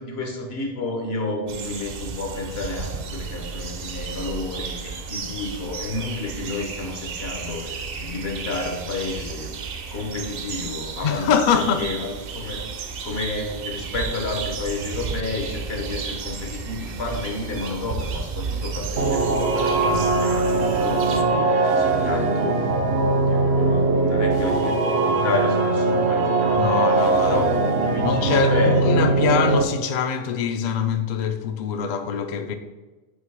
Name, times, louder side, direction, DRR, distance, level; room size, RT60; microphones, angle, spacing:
voice 1, 0.0-9.5 9.9-12.7 13.0-22.7 23.3-27.6 27.8-29.2, left 3 dB, 75° left, 1.3 m, -31 dB
sound 1, 1.5-21.2, right 5 dB, 65° right, 0.8 m, -33 dB
voice 2, 11.0-11.9 26.6-27.4 28.0-32.5, left 6 dB, 55° left, 0.5 m, -23 dB
sound 2, 19.0-29.6, right 3 dB, 85° right, 1.0 m, -21 dB
8.0 x 2.9 x 4.7 m
omnidirectional pair, 1.1 m